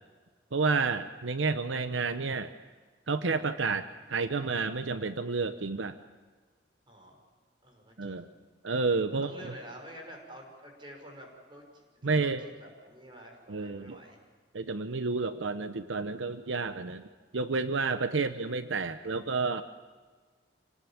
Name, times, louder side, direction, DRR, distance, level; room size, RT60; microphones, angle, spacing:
voice 1, 0.5-2.5 3.1-6.0 8.0-8.3 8.6-9.3 12.0-12.4 13.5-14.0 14.5-17.0 17.3-19.6, right 4 dB, 85° right, 10 dB, 0.8 m, -30 dB
voice 2, 6.9-7.2 7.6-8.3 9.2-14.2, equal, 25° right, 1 dB, 5.7 m, -49 dB
27.5 x 18.5 x 7.3 m, 1.4 s
head